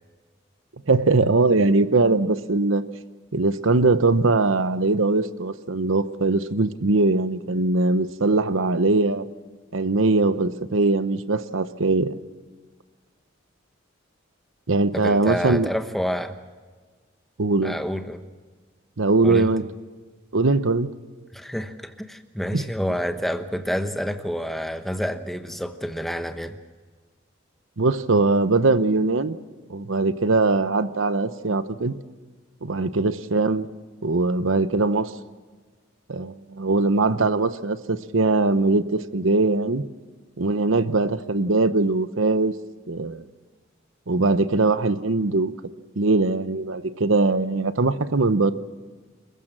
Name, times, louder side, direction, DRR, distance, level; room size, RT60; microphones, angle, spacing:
voice 1, 0.9-2.8 3.3-9.2 9.7-12.2 14.7-15.7 17.4-17.7 19.0-19.6 20.3-20.9 22.5-22.6 27.8-29.4 29.7-31.9 32.6-33.7 34.0-35.1 36.1-39.8 40.4-42.5 42.9-43.2 44.1-45.5 46.0-48.5, right 3 dB, 85° right, 13 dB, 0.9 m, -21 dB
voice 2, 14.9-16.4 17.6-18.2 19.2-19.5 21.3-26.6, equal, ahead, 8 dB, 1.1 m, -28 dB
28.0 x 15.0 x 7.5 m, 1.4 s
head